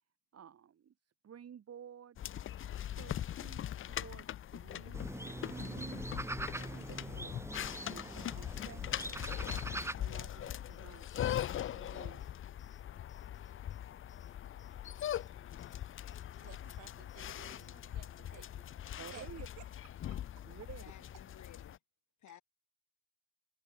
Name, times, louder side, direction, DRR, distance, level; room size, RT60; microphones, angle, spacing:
voice 1, 0.3-0.9 1.2-2.2 2.9-6.0 6.5-7.5 7.9-9.3 10.0-11.1 11.7-12.2 19.0-19.5 20.4-20.8, right 8 dB, 55° right, 3.3 m, -53 dB
sound 1, 2.2-21.8, left 11 dB, 45° left, 0.5 m, -41 dB
sound 2, 4.9-9.9, right 2 dB, 10° right, 1.4 m, -42 dB
sound 3, 9.7-17.7, left 3 dB, 25° left, 6.9 m, -72 dB
voice 2, 16.4-18.6 19.1-19.3 19.6-19.7 20.1-20.4 21.3-21.4 22.3-22.4, right 16 dB, 90° right, 2.5 m, -57 dB
voice 3, 20.8-21.8 22.2-22.4, left 12 dB, 75° left, 5.1 m, -56 dB
cardioid pair, 90°, 30 cm